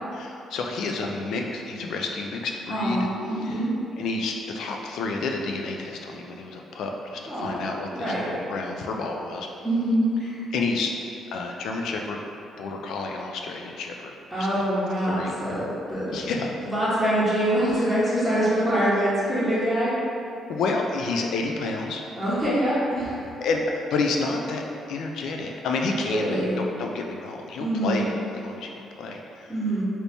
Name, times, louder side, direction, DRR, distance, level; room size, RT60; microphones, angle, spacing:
voice 1, 0.1-3.0 3.4-3.6 4.0-9.5 10.5-10.9 11.3-12.2 12.6-14.6 15.0-15.3 16.1-16.7 20.4-22.0 23.4-29.5, left 3 dB, 80° left, 1 dB, 0.3 m, -30 dB
voice 2, 2.7-3.7 7.3-7.6 7.9-8.2 9.6-10.5 14.3-16.2 16.6-19.9 22.2-23.4 26.0-26.6 27.6-28.0 29.5-29.8, right 1 dB, ahead, -12 dB, 1.0 m, -25 dB
2.8 x 2.7 x 3.3 m, 2.6 s
cardioid pair, 90°, 0 cm